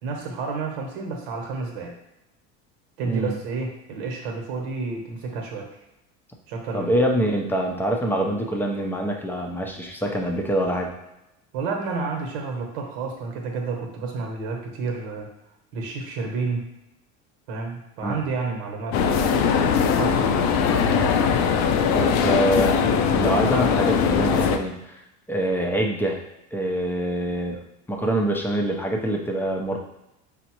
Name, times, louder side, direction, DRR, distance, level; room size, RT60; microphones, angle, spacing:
voice 1, 0.0-2.0 3.0-5.7 6.5-6.9 11.5-15.3 15.7-16.7 17.5-21.2, right 4 dB, 70° right, 2 dB, 1.0 m, -30 dB
voice 2, 6.7-10.9 18.0-18.2 21.9-22.8 23.1-25.0 25.3-26.2 26.5-27.6 27.9-29.8, right 1 dB, 5° left, 1 dB, 0.6 m, -25 dB
sound 1, 18.9-24.6, left 6 dB, 55° left, 0.5 m, -20 dB
5.2 x 2.1 x 2.9 m, 0.92 s
supercardioid pair, 95°, 32 cm